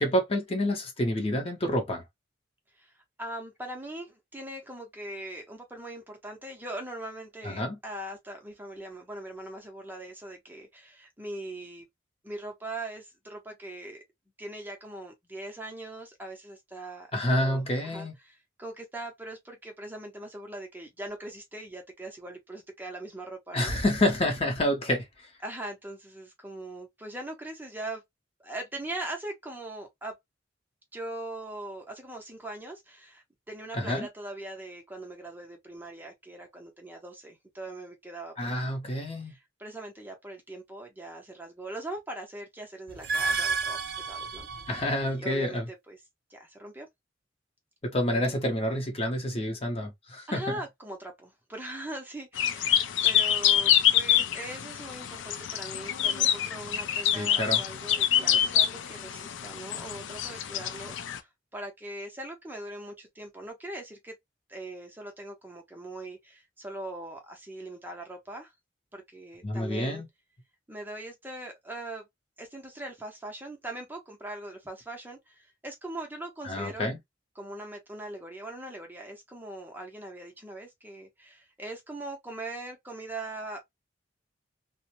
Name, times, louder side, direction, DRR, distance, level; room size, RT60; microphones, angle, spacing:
voice 1, 0.0-2.0 7.4-7.8 17.1-18.1 23.5-25.0 33.7-34.1 38.4-39.3 44.7-45.7 47.8-50.6 57.1-57.6 69.4-70.1 76.4-77.0, left 1 dB, 30° left, 0.6 m, -28 dB
voice 2, 2.8-11.9 12.2-14.0 14.4-23.8 25.4-28.0 28.4-30.1 30.9-38.5 39.2-44.5 45.0-46.0 46.3-46.9 48.1-48.4 50.3-64.1 64.5-68.5 68.9-70.0 70.7-72.1 72.4-76.9 77.4-83.6, right 1 dB, 10° right, 0.6 m, -41 dB
sound 1, 42.9-45.1, right 4 dB, 55° right, 0.7 m, -31 dB
sound 2, 52.4-61.2, left 10 dB, 75° left, 0.4 m, -26 dB
2.5 x 2.0 x 2.8 m
head